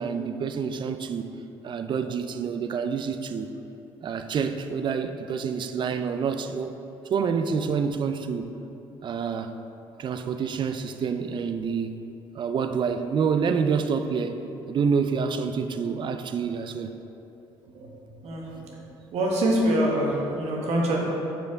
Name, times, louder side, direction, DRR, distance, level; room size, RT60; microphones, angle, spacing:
voice 1, 0.0-1.4 1.6-3.5 4.0-6.7 7.1-8.6 9.0-9.5 10.0-12.0 12.3-17.0, right 6 dB, 45° right, 8 dB, 0.4 m, -27 dB
voice 2, 18.2-18.8 19.1-21.0, right 1 dB, 70° right, -2 dB, 1.2 m, -25 dB
5.3 x 4.5 x 4.6 m, 2.8 s
supercardioid pair, 80°, 11 cm